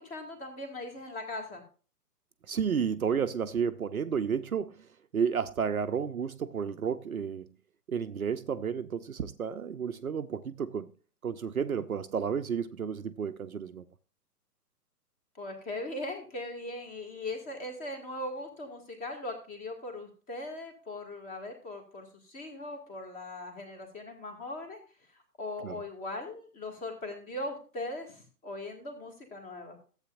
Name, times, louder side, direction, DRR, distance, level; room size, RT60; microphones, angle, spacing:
voice 1, 0.0-1.6 15.4-24.8 25.1-29.8, left 2 dB, 15° left, 2.1 m, -39 dB
voice 2, 2.5-7.5 7.9-10.9 11.2-13.8 25.6-25.8, right 7 dB, 60° right, 0.8 m, -32 dB
14.0 x 8.2 x 2.5 m
figure-of-eight pair, 130°, 48 cm